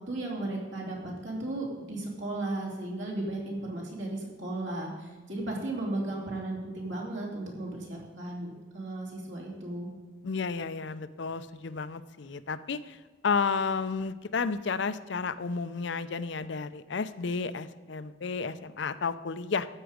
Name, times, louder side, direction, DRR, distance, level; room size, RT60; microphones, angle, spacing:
voice 1, 0.1-9.9, right 2 dB, 65° right, -2 dB, 2.8 m, -35 dB
voice 2, 10.2-13.0 13.2-19.7, left 5 dB, 60° left, 13 dB, 0.5 m, -32 dB
13.0 x 8.9 x 5.1 m, 1.3 s
head